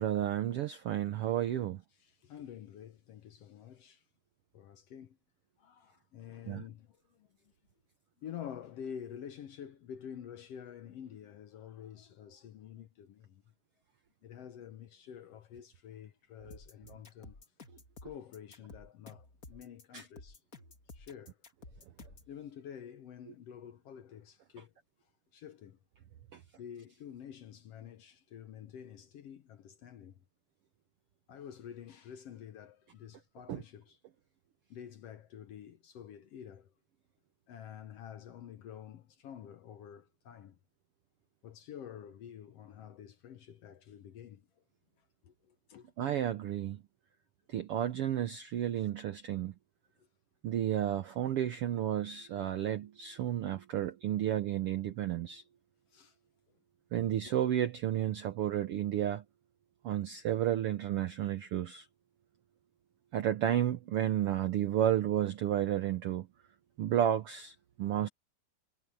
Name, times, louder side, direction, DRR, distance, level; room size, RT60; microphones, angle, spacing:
voice 1, 0.0-1.8 6.5-6.6 19.9-20.1 26.3-26.4 33.5-33.6 46.0-46.8 47.5-49.5 50.4-55.4 56.9-59.2 59.8-61.9 63.1-66.3 66.8-68.1, right 11 dB, 75° right, 1.3 m, -32 dB
voice 2, 2.0-4.0 4.5-5.2 5.6-7.3 8.2-13.4 14.2-17.4 18.0-20.4 20.9-21.4 22.3-24.7 25.3-25.8 26.6-30.2 31.3-34.0 34.7-36.7 37.5-40.6 41.4-44.4 45.2-45.9 55.9-56.1 57.0-57.2, left 9 dB, 65° left, 1.7 m, -48 dB
sound 1, 16.5-22.3, left 3 dB, 30° left, 2.5 m, -52 dB
omnidirectional pair, 3.6 m